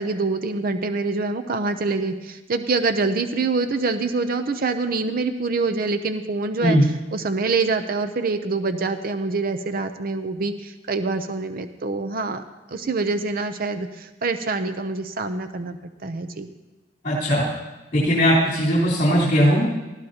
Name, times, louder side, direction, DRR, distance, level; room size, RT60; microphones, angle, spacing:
voice 1, 0.0-6.8 7.1-12.4 12.7-16.5, right 3 dB, 50° right, 9 dB, 0.6 m, -25 dB
voice 2, 17.0-17.4 17.9-19.6, equal, 45° left, -8 dB, 3.7 m, -18 dB
19.5 x 14.0 x 2.9 m, 1.1 s
head